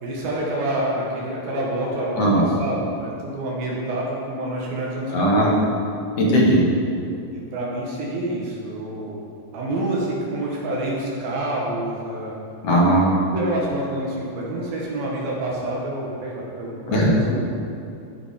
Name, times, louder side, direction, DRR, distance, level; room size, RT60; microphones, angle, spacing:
voice 1, 0.0-5.5 7.3-9.2 9.5-12.3 13.3-17.4, right 1 dB, 70° right, -4 dB, 3.0 m, -27 dB
voice 2, 5.1-5.5 6.2-6.6 12.6-13.1 16.9-17.1, right 1 dB, 50° left, -4 dB, 2.2 m, -17 dB
14.5 x 5.0 x 5.0 m, 2.6 s
omnidirectional pair, 4.5 m